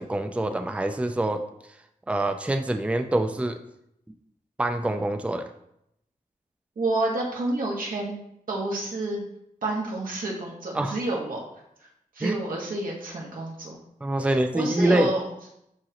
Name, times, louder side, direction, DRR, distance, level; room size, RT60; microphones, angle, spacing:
voice 1, 0.0-1.4 2.1-3.6 4.6-5.5 10.7-11.0 12.2-12.4 14.0-15.1, right 1 dB, 10° right, 7 dB, 0.5 m, -25 dB
voice 2, 6.7-8.2 8.5-9.2 9.6-11.4 12.1-13.8 14.5-15.3, right 2 dB, 85° right, -3 dB, 1.8 m, -29 dB
11.5 x 3.8 x 3.0 m, 0.77 s
wide cardioid pair, 90°, 14 cm